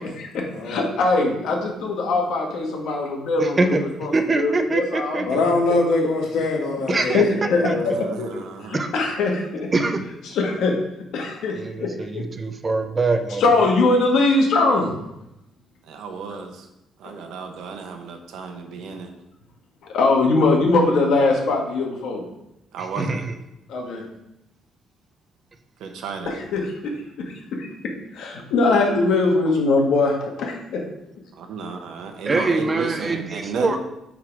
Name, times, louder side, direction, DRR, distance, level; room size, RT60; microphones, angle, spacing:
voice 1, 0.0-5.2 7.1-7.6 7.8-8.3 8.7-9.7 10.3-10.8 11.1-12.3 13.4-15.0 17.0-17.1 19.8-22.2 23.7-24.0 26.2-26.9 27.2-30.8, left 3 dB, 70° left, 0 dB, 1.7 m, -22 dB
voice 2, 3.4-3.8 4.1-5.4 6.9-7.2 7.6-7.7 8.7-8.9 9.7-10.0 11.5-13.7 22.8-23.3 32.2-33.8, right 3 dB, 20° right, 7 dB, 0.6 m, -24 dB
voice 3, 5.3-7.2 7.5-7.9, left 3 dB, 90° left, 0 dB, 1.8 m, -22 dB
voice 4, 7.8-8.8 15.8-16.7 17.0-19.1 22.7-23.2 25.8-26.4 31.3-33.8, right 5 dB, 80° right, 5 dB, 1.1 m, -33 dB
9.4 x 3.8 x 4.6 m, 0.87 s
cardioid pair, 165°, 0 cm